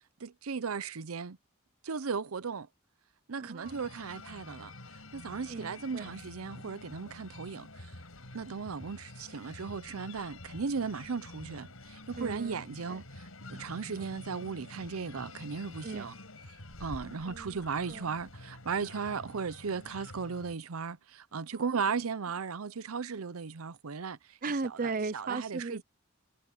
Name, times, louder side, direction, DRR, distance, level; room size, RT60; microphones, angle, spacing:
voice 1, 0.2-1.4 1.8-2.7 3.3-4.7 5.1-7.9 8.3-16.1 16.8-24.2 25.1-25.8, right 5 dB, 85° right, 0.7 m, -36 dB
voice 2, 3.4-3.8 5.5-6.1 12.2-13.0 14.0-14.1 15.8-16.1 17.2-17.6 17.9-18.1 21.5-21.7 24.4-25.8, right 4 dB, 40° right, 0.6 m, -37 dB
sound 1, 3.6-20.6, left 2 dB, 90° left, 5.2 m, -48 dB
head